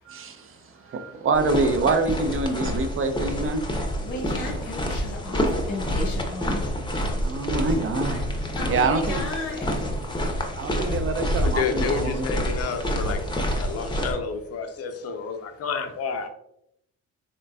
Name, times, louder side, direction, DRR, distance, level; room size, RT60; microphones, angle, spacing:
voice 1, 0.1-3.6 7.2-8.2 8.7-9.2 10.6-12.3, right 3 dB, 45° right, 0.5 m, -26 dB
sound 1, 1.3-14.1, equal, 15° left, 0.6 m, -28 dB
voice 2, 4.0-6.6 8.5-9.8, left 2 dB, 90° left, 1.2 m, -34 dB
voice 3, 11.4-13.2 13.6-16.3, left 5 dB, 55° left, 0.6 m, -30 dB
3.8 x 3.2 x 2.2 m
cardioid pair, 90°, 30 cm